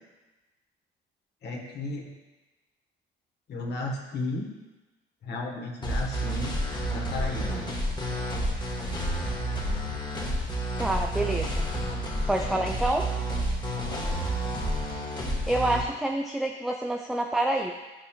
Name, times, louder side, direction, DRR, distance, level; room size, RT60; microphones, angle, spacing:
voice 1, 1.4-2.1 3.5-4.5 5.2-6.6 6.9-7.6 13.8-14.0, left 2 dB, 35° left, -1 dB, 1.4 m, -34 dB
sound 1, 5.8-15.8, equal, 15° left, 1.5 m, -30 dB
voice 2, 10.8-11.7 12.3-13.1 15.5-17.7, right 1 dB, ahead, 2 dB, 0.3 m, -27 dB
12.0 x 5.5 x 2.4 m, 1.1 s
figure-of-eight pair, 55°, 30 cm